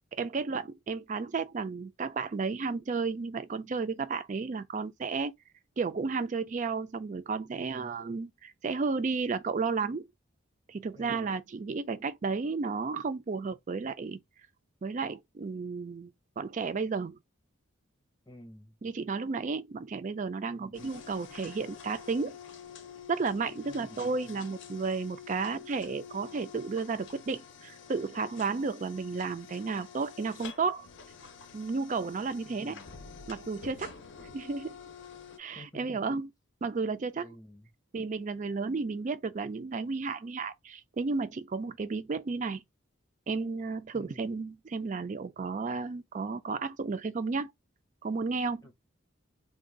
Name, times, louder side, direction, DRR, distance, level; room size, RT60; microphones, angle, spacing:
voice 1, 0.1-5.3 5.8-10.1 10.7-14.2 14.8-16.1 16.4-17.2 18.8-22.4 23.1-30.9 31.5-32.8 33.3-33.9 34.2-34.8 35.4-36.3 36.6-37.3 37.9-42.6 43.3-47.5 48.0-48.6, right 4 dB, 35° right, 0.3 m, -33 dB
voice 2, 7.5-8.0 10.9-11.3 18.3-18.7 20.5-20.8 23.6-24.0 32.4-33.0 35.5-35.9 37.2-37.7 43.9-44.3 48.6-48.7, left 1 dB, 15° left, 0.7 m, -51 dB
sound 1, 20.7-35.4, left 7 dB, 60° left, 0.6 m, -48 dB
2.5 x 2.3 x 3.7 m
head